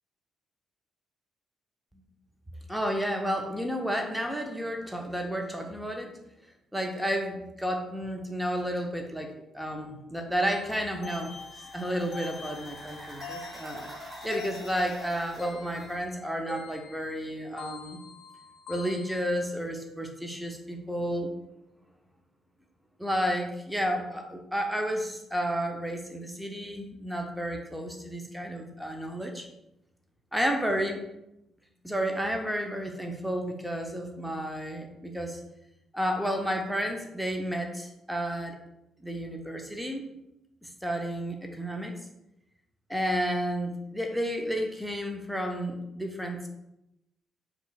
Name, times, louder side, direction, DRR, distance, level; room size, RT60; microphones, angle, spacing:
voice 1, 2.7-6.1 6.7-11.3 11.7-18.0 18.7-21.3 23.0-29.5 30.3-31.0 31.8-35.4 35.9-38.5 39.0-40.0 40.6-41.9 42.9-46.5, equal, 5° right, 3 dB, 0.7 m, -31 dB
sound 1, 10.5-19.2, left 4 dB, 50° left, 0.5 m, -45 dB
sound 2, 10.7-16.0, equal, 25° right, 1.2 m, -47 dB
5.2 x 3.0 x 2.4 m, 0.86 s
figure-of-eight pair, 45°, 0 cm